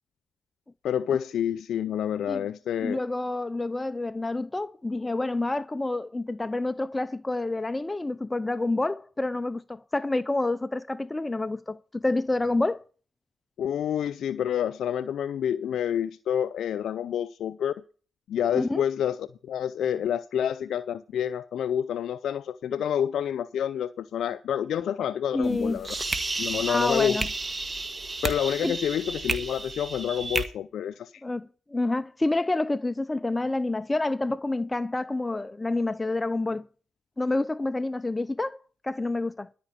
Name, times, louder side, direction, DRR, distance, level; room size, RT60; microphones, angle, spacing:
voice 1, 0.8-3.0 13.6-17.7 18.3-25.9 26.4-27.2 28.2-31.1, left 9 dB, 70° left, 0.4 m, -28 dB
voice 2, 2.8-12.8 18.5-18.8 25.3-25.8 26.7-27.3 28.6-28.8 31.2-36.7 37.2-38.6 38.8-39.5, left 2 dB, 20° left, 0.6 m, -28 dB
sound 1, 25.4-30.4, right 3 dB, 30° right, 1.8 m, -32 dB
13.0 x 5.1 x 8.5 m
supercardioid pair, 55°, 0 cm